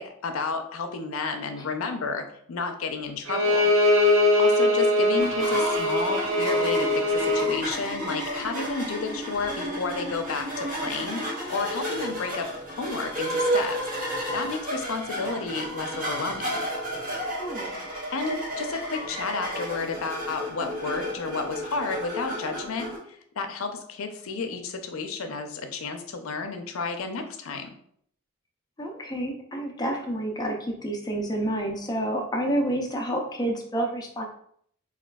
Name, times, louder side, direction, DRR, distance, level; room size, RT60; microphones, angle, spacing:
voice 1, 0.0-3.7 4.4-13.8 14.3-16.6 18.1-22.9 23.4-27.7, left 4 dB, 80° left, 6 dB, 0.5 m, -32 dB
Bowed string instrument, 3.3-7.5, left 1 dB, 65° right, 0.5 m, -21 dB
sound 1, 5.2-23.0, equal, 40° right, 1.0 m, -32 dB
voice 2, 17.4-17.7 28.8-34.2, right 1 dB, 20° left, 1 dB, 0.4 m, -29 dB
4.2 x 2.3 x 2.2 m, 0.65 s
head